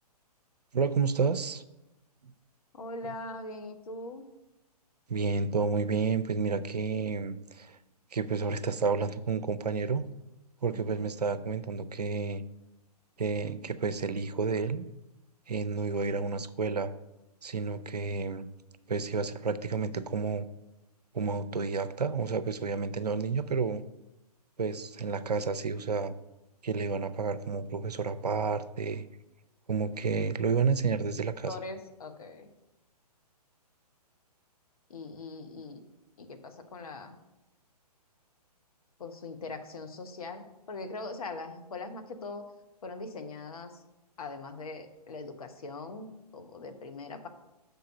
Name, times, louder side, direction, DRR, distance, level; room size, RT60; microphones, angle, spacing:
voice 1, 0.7-1.6 3.0-3.1 5.1-7.8 8.1-10.0 10.6-12.4 13.2-14.9 15.5-16.9 17.4-18.5 18.9-20.5 21.1-23.8 24.6-26.1 26.6-29.1 29.7-31.6, right 5 dB, 75° right, 12 dB, 0.5 m, -30 dB
voice 2, 2.7-4.2 10.7-11.1 31.5-32.5 34.9-35.8 36.2-37.1 39.0-42.5 42.8-43.7 44.2-47.3, left 3 dB, 60° left, 7 dB, 1.0 m, -41 dB
6.6 x 4.7 x 6.5 m, 0.97 s
figure-of-eight pair, 125°, 21 cm